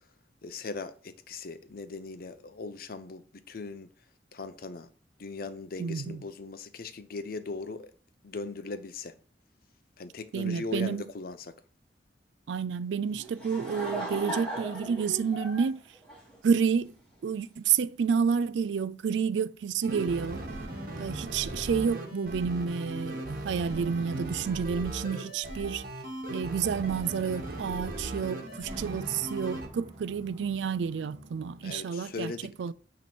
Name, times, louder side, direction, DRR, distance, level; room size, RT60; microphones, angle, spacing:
voice 1, 0.4-3.9 4.3-4.9 5.2-7.9 8.2-9.1 10.0-11.5 31.6-32.5, left 4 dB, 55° left, 0.6 m, -39 dB
voice 2, 5.8-6.2 10.3-11.0 12.5-15.8 16.4-16.9 17.2-20.4 21.0-25.8 26.3-32.3 32.6-32.7, right 6 dB, 85° right, 0.4 m, -29 dB
Laughter / Crowd, 13.1-16.9, right 1 dB, 5° left, 2.4 m, -37 dB
sound 1, 19.8-29.7, right 1 dB, 55° right, 1.3 m, -38 dB
sound 2, 28.1-31.7, equal, 30° right, 1.1 m, -48 dB
9.1 x 3.1 x 4.3 m
head